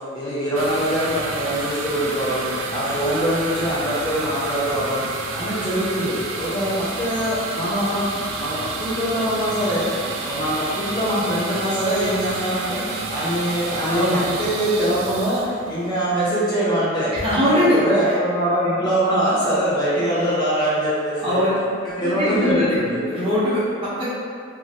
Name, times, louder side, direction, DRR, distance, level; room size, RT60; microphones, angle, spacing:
voice 1, 0.0-5.1 5.3-17.1 17.4-21.5 21.9-23.0, equal, 20° left, -9 dB, 0.5 m, -23 dB
sound 1, 0.5-16.3, right 3 dB, 80° right, 0.3 m, -30 dB
voice 2, 13.9-14.2 17.2-17.8 21.2-21.5 22.0-22.8 23.1-24.1, equal, 30° right, -11 dB, 0.8 m, -21 dB
3.0 x 2.3 x 2.7 m, 2.3 s
head